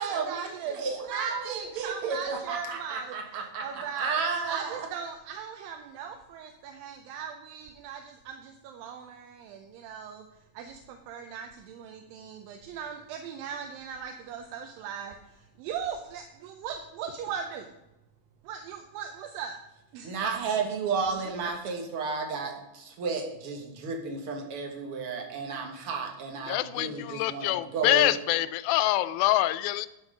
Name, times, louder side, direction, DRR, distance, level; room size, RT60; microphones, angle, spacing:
voice 1, 0.0-10.3 10.5-17.7 18.4-19.6 19.9-20.2 21.3-21.6, right 7 dB, 80° right, 5 dB, 2.4 m, -38 dB
voice 2, 0.8-4.9 20.0-28.1, right 5 dB, 50° right, 3 dB, 1.8 m, -32 dB
voice 3, 26.5-29.9, left 15 dB, 90° left, 14 dB, 2.4 m, -25 dB
11.5 x 6.3 x 4.9 m, 0.92 s
omnidirectional pair, 4.1 m